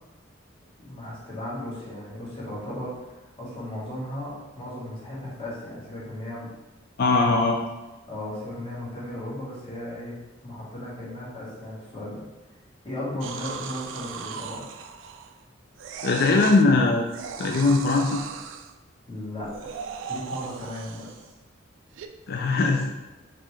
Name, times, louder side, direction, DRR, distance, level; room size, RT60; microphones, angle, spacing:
voice 1, 0.8-6.5 8.1-10.2 10.4-12.2 12.8-14.7 19.1-19.8 20.1-21.1, left 1 dB, 30° left, -7 dB, 1.4 m, -36 dB
voice 2, 7.0-7.6 16.0-17.0 17.4-18.2 22.3-22.9, left 3 dB, 55° left, 1 dB, 0.4 m, -20 dB
sound 1, 13.2-15.4 15.8-16.7 17.1-18.7 19.4-21.3 22.0-22.1, right 6 dB, 70° right, 0.3 m, -37 dB
4.2 x 3.1 x 3.2 m, 1.1 s
head